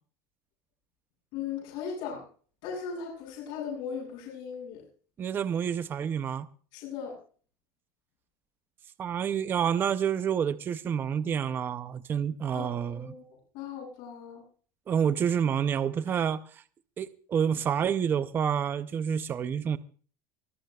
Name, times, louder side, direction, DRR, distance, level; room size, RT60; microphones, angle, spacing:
voice 1, 1.3-2.2 2.6-4.8 6.7-7.1 12.5-14.4, left 6 dB, 55° left, 7.8 m, -38 dB
voice 2, 5.2-6.5 9.0-13.1 14.9-16.6 17.0-19.8, right 8 dB, 20° right, 0.5 m, -28 dB
23.5 x 14.5 x 2.3 m
cardioid pair, 160°, 9 cm